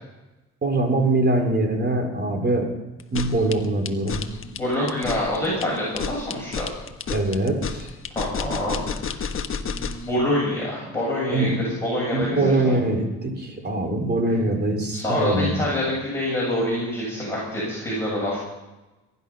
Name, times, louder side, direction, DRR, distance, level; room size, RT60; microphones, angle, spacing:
voice 1, 0.6-2.7 3.1-4.2 7.1-7.9 11.3-11.6 12.1-15.6, right 2 dB, 35° right, 3 dB, 4.2 m, -23 dB
sound 1, 3.0-10.1, left 6 dB, 45° left, 1.2 m, -31 dB
voice 2, 4.4-6.7 8.2-9.2 9.7-12.8 14.9-18.4, left 1 dB, 10° left, -6 dB, 7.2 m, -26 dB
22.5 x 11.0 x 5.7 m, 1.1 s
cardioid pair, 90°, 30 cm